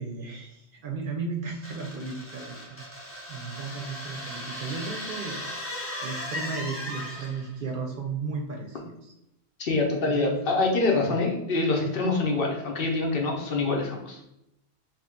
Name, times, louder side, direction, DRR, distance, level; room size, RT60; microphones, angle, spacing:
voice 1, 0.0-2.8 3.3-5.4 6.0-9.1 10.1-10.5, right 4 dB, 60° right, 0 dB, 0.7 m, -35 dB
sound 1, 1.6-7.5, left 1 dB, 15° left, 0.6 m, -37 dB
voice 2, 9.6-14.2, left 3 dB, 60° left, 0 dB, 0.8 m, -25 dB
2.9 x 2.7 x 3.4 m, 0.84 s
omnidirectional pair, 1.1 m